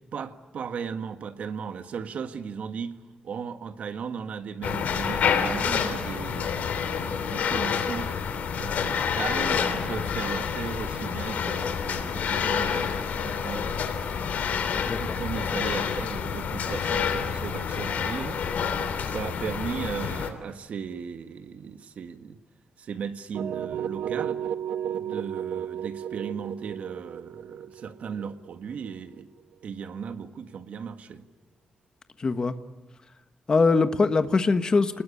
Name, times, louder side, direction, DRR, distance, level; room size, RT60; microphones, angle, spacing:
voice 1, 0.1-8.1 8.6-13.8 15.0-18.4 19.0-22.4 22.8-24.4 24.9-29.3 29.6-31.2, right 6 dB, 60° right, 1.7 m, -36 dB
sound 1, 4.6-20.3, left 7 dB, 75° left, 3.1 m, -28 dB
sound 2, 13.0-16.0 19.3-19.4 21.4-21.5 27.7-27.8, left 1 dB, 15° left, 5.4 m, -48 dB
sound 3, 23.3-29.2, right 9 dB, 80° right, 1.0 m, -33 dB
voice 2, 32.2-32.5 33.5-35.0, left 4 dB, 30° left, 1.3 m, -22 dB
29.0 x 20.5 x 8.5 m
wide cardioid pair, 160°, 3 cm